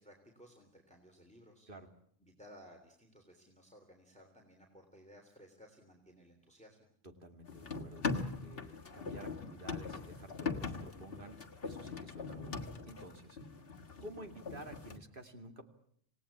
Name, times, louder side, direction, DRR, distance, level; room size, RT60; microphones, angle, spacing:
voice 1, 0.0-1.7 2.2-6.8, equal, 5° left, 2 dB, 3.4 m, -58 dB
voice 2, 7.2-11.4 11.6-13.4 14.0-15.7, right 1 dB, 45° right, 6 dB, 2.7 m, -52 dB
sound 1, 7.5-15.0, left 4 dB, 50° left, 1.8 m, -41 dB
27.0 x 18.0 x 8.7 m, 0.67 s
omnidirectional pair, 1.3 m